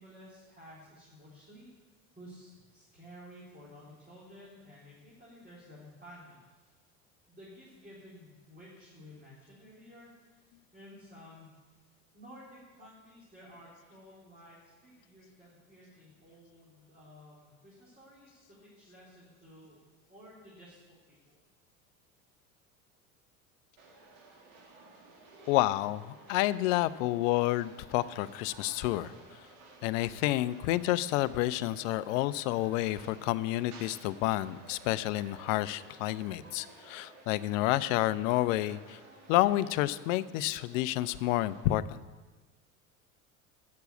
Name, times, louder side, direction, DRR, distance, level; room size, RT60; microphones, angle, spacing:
voice 1, 0.0-1.7 2.1-6.7 7.3-11.5 12.1-19.8 20.1-21.4, equal, 20° right, -7 dB, 3.7 m, -53 dB
sound 1, 23.8-41.6, right 2 dB, 70° right, 2.5 m, -54 dB
voice 2, 25.5-29.1 29.8-39.0 39.3-42.0, left 16 dB, 65° left, 16 dB, 0.6 m, -29 dB
9.5 x 6.8 x 8.4 m, 1.3 s
hypercardioid pair, 80°, 42 cm